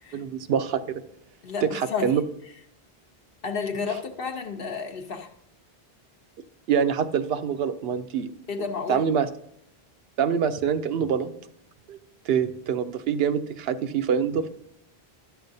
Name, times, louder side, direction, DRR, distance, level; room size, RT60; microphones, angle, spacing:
voice 1, 0.1-1.0 1.6-2.2 6.7-8.3 8.9-9.3 10.2-11.3 11.9-12.0 12.2-14.5, right 7 dB, 75° right, 11 dB, 0.8 m, -25 dB
voice 2, 1.4-2.1 3.4-5.3 8.5-9.0, left 5 dB, 65° left, 4 dB, 0.9 m, -31 dB
11.0 x 7.0 x 2.6 m, 0.70 s
omnidirectional pair, 1.0 m